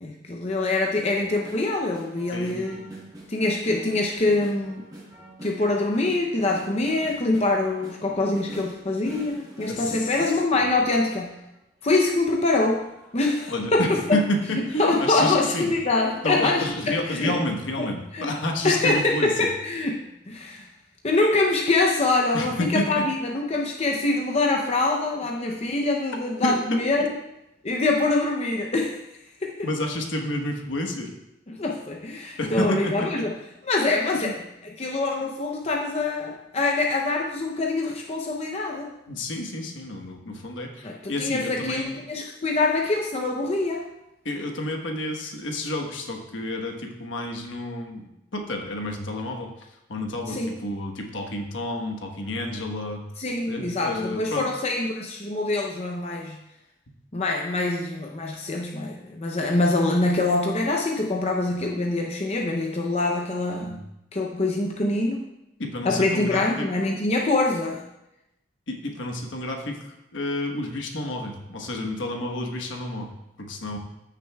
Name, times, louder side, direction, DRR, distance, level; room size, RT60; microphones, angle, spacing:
voice 1, 0.0-2.8 3.3-4.8 5.4-11.4 11.8-12.8 13.1-14.2 14.5-17.4 17.8-18.3 18.6-20.7 21.0-27.1 27.6-29.0 29.4-29.7 31.5-33.3 33.6-34.3 34.8-38.9 40.8-43.8 50.3-50.6 53.2-56.4 57.1-63.8 64.1-65.2 65.8-67.8, left 2 dB, 35° left, 0 dB, 0.6 m, -24 dB
sound 1, 1.0-11.4 11.8-14.2 14.8-14.9 15.2-15.4 16.0-16.9 17.3-17.4, right 1 dB, 20° right, 2.6 m, -45 dB
voice 2, 2.3-2.9 9.7-10.1 13.5-15.7 16.2-19.5 22.3-23.0 26.4-26.8 29.6-31.1 32.4-33.2 34.2-34.3 39.1-42.0 44.2-49.5 49.9-53.0 53.5-54.5 63.6-63.8 65.6-66.7 68.7-73.1 73.4-73.8, left 1 dB, 70° left, 2 dB, 1.2 m, -30 dB
14.0 x 6.5 x 2.3 m, 0.90 s
head